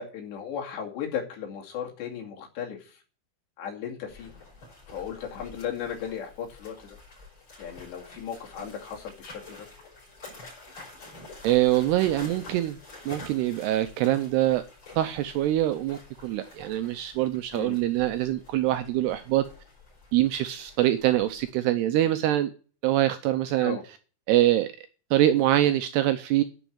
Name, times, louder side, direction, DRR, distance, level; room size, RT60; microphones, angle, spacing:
voice 1, 0.0-3.0 3.6-4.3 4.9-7.0 7.6-9.7 17.5-17.8 23.6-23.8, left 8 dB, 70° left, 4.6 m, -36 dB
sound 1, 4.1-21.5, left 2 dB, 25° left, 5.8 m, -48 dB
voice 2, 11.4-12.8 13.1-14.6 15.0-19.4 20.1-22.5 22.8-23.8 24.3-24.7 25.1-26.4, right 14 dB, 80° right, 2.5 m, -24 dB
11.5 x 6.2 x 8.5 m
omnidirectional pair, 5.3 m